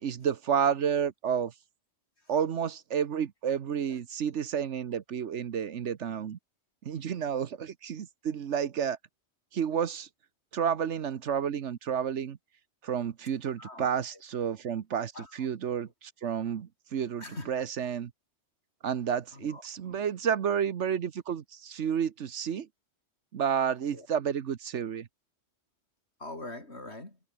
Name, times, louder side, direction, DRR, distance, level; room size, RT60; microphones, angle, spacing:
voice 1, 0.0-1.5 2.3-6.4 6.8-9.0 9.5-10.1 10.5-12.4 12.8-18.1 18.8-22.7 23.3-25.1, right 8 dB, 70° right, 1.3 m, -30 dB
voice 2, 13.6-14.2 15.1-15.5 17.2-17.5 19.3-20.0 23.9-24.1 26.2-27.2, left 2 dB, 60° left, 5.3 m, -44 dB
omnidirectional pair, 1.3 m